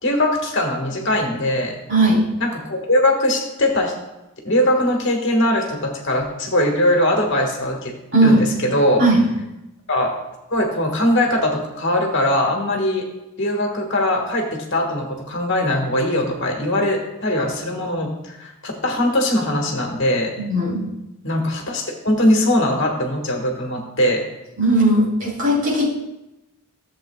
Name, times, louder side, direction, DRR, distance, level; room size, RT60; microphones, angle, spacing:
voice 1, 0.0-1.8 2.4-3.9 4.4-7.9 8.2-9.0 9.9-10.1 10.5-13.0 13.4-20.3 21.2-24.2, left 1 dB, 55° left, 1 dB, 1.5 m, -20 dB
voice 2, 1.9-2.2 8.1-8.4 9.0-9.2 20.4-20.8 24.6-25.9, right 1 dB, 55° right, -4 dB, 3.1 m, -17 dB
14.5 x 7.4 x 2.3 m, 0.96 s
head